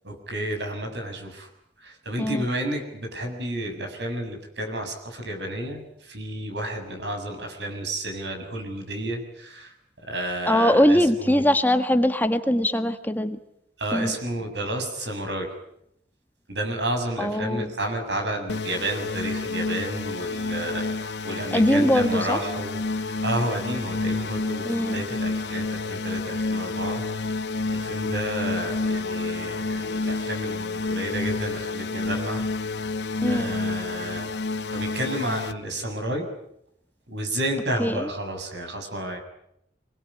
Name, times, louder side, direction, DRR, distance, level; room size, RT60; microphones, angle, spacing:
voice 1, 0.0-1.5 1.8-9.7 10.0-11.4 13.8-15.5 16.5-27.0 27.3-27.4 27.7-32.5 33.2-34.3 34.7-36.3 37.1-39.2, right 1 dB, 80° right, 4 dB, 6.8 m, -31 dB
voice 2, 10.5-13.4 13.9-14.1 17.2-17.7 21.5-22.4 24.6-25.0 33.2-33.5 37.8-38.1, equal, 10° left, 8 dB, 1.5 m, -21 dB
sound 1, 18.5-35.5, left 3 dB, 70° left, 1.0 m, -29 dB
26.0 x 20.5 x 9.9 m, 0.77 s
head